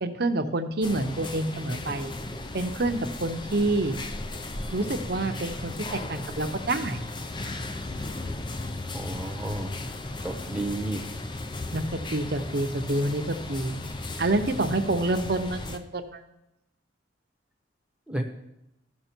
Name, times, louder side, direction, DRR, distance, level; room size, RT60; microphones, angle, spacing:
voice 1, 0.0-2.1 2.5-4.0 4.7-7.0 11.7-13.8 14.2-16.2, right 2 dB, 55° right, 7 dB, 0.8 m, -27 dB
sound 1, 0.8-15.8, left 2 dB, 25° left, 0.5 m, -36 dB
voice 2, 8.9-9.8 10.2-11.1 18.1-18.2, right 1 dB, 5° right, 2 dB, 1.0 m, -32 dB
14.5 x 6.1 x 4.5 m, 0.89 s
head